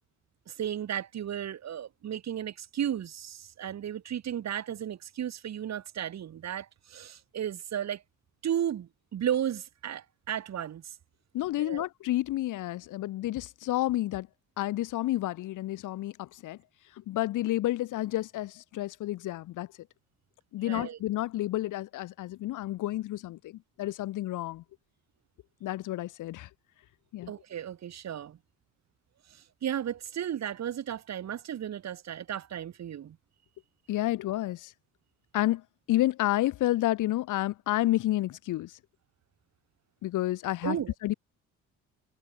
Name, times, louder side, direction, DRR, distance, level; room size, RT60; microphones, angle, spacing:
voice 1, 0.5-8.0 8.4-10.9 11.6-11.8 20.6-21.0 27.3-28.4 29.3-33.2 40.6-40.9, right 10 dB, 60° right, 3.3 m, -34 dB
voice 2, 11.3-14.3 14.6-16.6 17.1-19.7 20.5-24.6 25.6-26.5 27.1-27.3 33.9-34.7 35.3-35.6 35.9-38.7 40.0-40.8 41.0-41.1, left 15 dB, 85° left, 2.8 m, -30 dB
cardioid pair, 90°, 30 cm